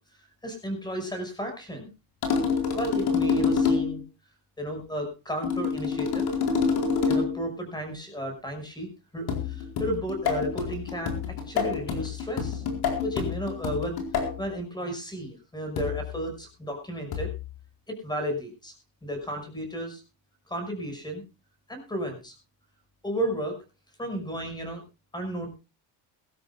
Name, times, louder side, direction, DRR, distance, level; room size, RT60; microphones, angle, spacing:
voice 1, 0.4-1.9 2.7-4.0 4.6-6.3 7.1-12.6 13.0-14.0 14.4-17.3 17.9-18.7 19.0-20.0 20.5-21.2 21.7-22.3 23.0-23.6 24.0-24.8 25.1-25.5, equal, 10° left, 5 dB, 5.9 m, -33 dB
sound 1, 2.2-4.0 5.4-7.4 9.3-14.4 15.8-16.1 17.1-17.4, left 5 dB, 60° left, 4.5 m, -27 dB
23.0 x 13.0 x 2.4 m, 0.28 s
cardioid pair, 150°, 42 cm